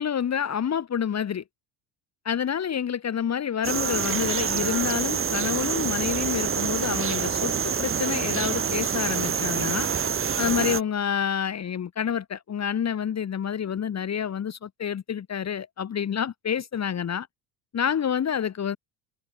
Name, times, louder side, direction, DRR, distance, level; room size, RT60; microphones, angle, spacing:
voice 1, 0.0-1.4 2.3-9.9 10.4-17.3 17.7-18.8, left 8 dB, 35° left, 2.0 m, -28 dB
sound 1, 3.6-10.8, right 7 dB, 25° right, 1.9 m, -27 dB
supercardioid pair, 85°, 46 cm